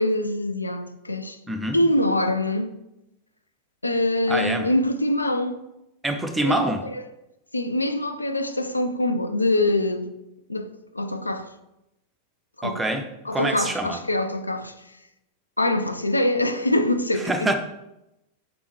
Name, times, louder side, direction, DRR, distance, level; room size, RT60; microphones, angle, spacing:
voice 1, 0.0-1.4 1.7-2.7 3.8-5.6 6.4-7.0 7.5-10.1 10.5-11.5 12.6-12.8 13.3-14.7 15.6-17.6, left 1 dB, 85° left, 0.3 m, -24 dB
voice 2, 1.5-1.8 4.3-4.7 6.0-6.8 12.6-13.1 13.3-14.0 17.1-17.6, right 1 dB, 10° right, 0.5 m, -25 dB
5.0 x 3.5 x 3.0 m
figure-of-eight pair, 90°, 0 cm